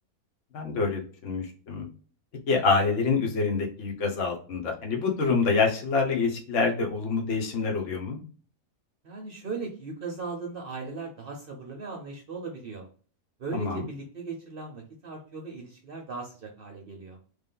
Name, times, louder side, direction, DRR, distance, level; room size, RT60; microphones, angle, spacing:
voice 1, 0.5-1.9 2.5-8.2 13.5-13.9, left 4 dB, 60° left, 1 dB, 1.2 m, -26 dB
voice 2, 9.0-12.9 13.4-17.2, right 4 dB, 55° right, 1 dB, 0.7 m, -38 dB
3.4 x 2.5 x 3.7 m, 0.42 s
omnidirectional pair, 1.5 m